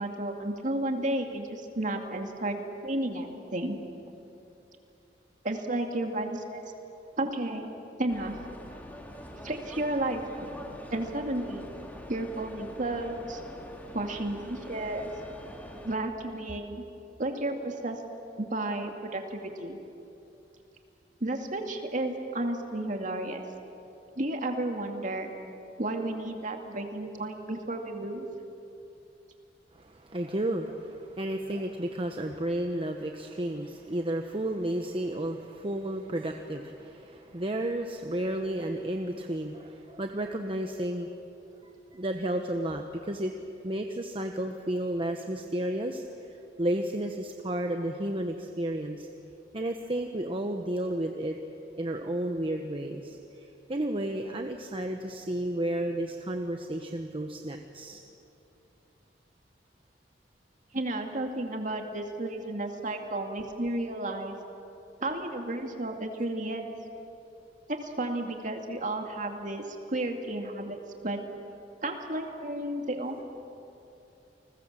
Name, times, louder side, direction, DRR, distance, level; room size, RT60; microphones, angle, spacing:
voice 1, 0.0-2.6 2.8-3.8 5.4-6.6 7.2-7.7 8.0-8.4 9.4-11.7 12.1-13.4 13.9-15.1 15.8-16.8 17.2-18.0 18.4-19.8 21.2-23.4 24.2-25.3 25.8-28.3 60.7-64.4 65.0-66.6 67.7-70.8 71.0-71.2 71.8-73.3, right 1 dB, 45° right, 3 dB, 2.4 m, -32 dB
sound 1, 8.1-16.0, equal, 10° left, 2.6 m, -45 dB
voice 2, 29.7-41.1 41.9-43.4 43.6-49.1 49.5-51.4 51.8-58.0, right 1 dB, 30° right, 4 dB, 1.1 m, -32 dB
29.5 x 20.5 x 7.5 m, 2.8 s
head